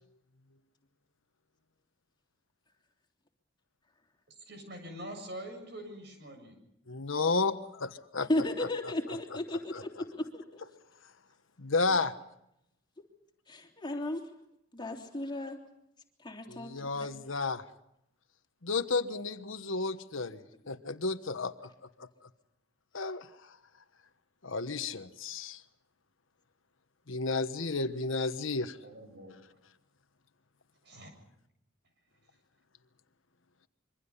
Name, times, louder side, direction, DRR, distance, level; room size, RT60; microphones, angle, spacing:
voice 1, 4.4-6.6 28.8-29.3 30.8-31.1, right 1 dB, 60° right, 5 dB, 7.4 m, -44 dB
voice 2, 6.9-7.6 7.8-8.3 9.7-9.8 11.6-12.1 16.5-17.6 18.6-21.5 22.9-23.3 24.4-25.6 27.1-28.8, left 3 dB, 80° left, 10 dB, 1.3 m, -32 dB
voice 3, 8.3-10.6 13.5-14.2 14.7-15.6 16.2-17.1, left 1 dB, 25° left, 2 dB, 3.3 m, -35 dB
26.0 x 24.0 x 5.6 m, 0.81 s
head